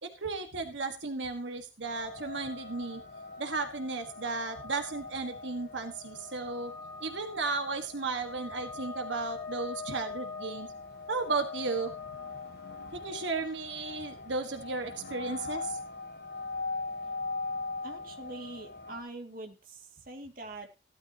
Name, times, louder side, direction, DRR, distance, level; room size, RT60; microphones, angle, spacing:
voice 1, 0.0-3.0 3.4-6.7 7.0-10.7 11.1-11.9 12.9-15.8, right 3 dB, 85° right, 5 dB, 1.8 m, -34 dB
sound 1, 1.8-19.0, left 3 dB, 75° left, 6.4 m, -41 dB
voice 2, 17.8-19.5 20.1-20.7, right 2 dB, 50° right, 3 dB, 2.5 m, -43 dB
16.0 x 12.5 x 3.0 m, 0.28 s
head